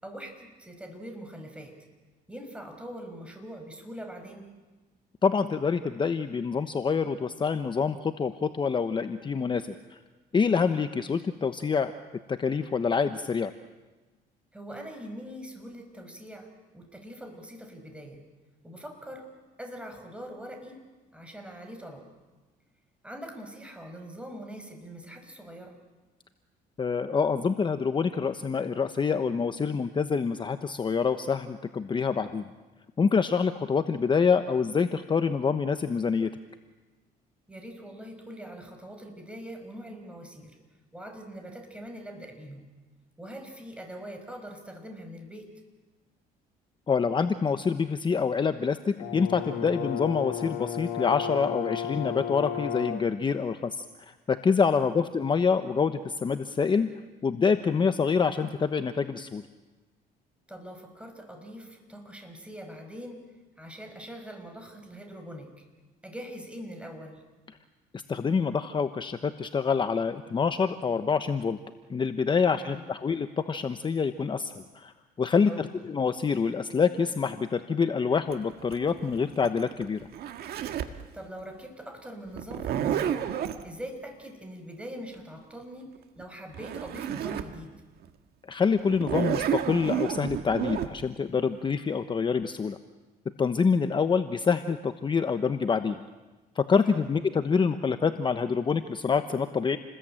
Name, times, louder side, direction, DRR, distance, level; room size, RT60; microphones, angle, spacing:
voice 1, 0.0-1.8 2.3-4.5 14.5-18.2 18.6-19.3 19.6-20.9 21.1-22.1 23.0-25.8 37.5-40.6 40.9-42.7 43.2-45.5 54.7-55.1 60.5-65.6 66.0-67.2 72.6-72.9 75.5-75.7 81.1-83.3 83.6-87.8 96.8-97.1, equal, 5° right, 5 dB, 5.4 m, -43 dB
voice 2, 5.2-10.0 10.3-11.9 12.3-13.5 26.8-32.4 33.0-36.3 46.9-56.9 57.2-59.4 67.9-71.6 71.9-80.0 88.5-92.8 93.4-96.0 96.6-99.8, left 5 dB, 30° left, 9 dB, 1.0 m, -26 dB
Brass instrument, 49.0-53.1, left 9 dB, 80° left, 3.7 m, -33 dB
Zipper (clothing), 78.3-81.0 82.4-83.6 86.2-86.3 86.5-87.5 88.0-88.1 88.9-90.9, right 10 dB, 70° right, 1.8 m, -30 dB
29.0 x 20.5 x 8.9 m, 1.2 s
cardioid pair, 110°, 17 cm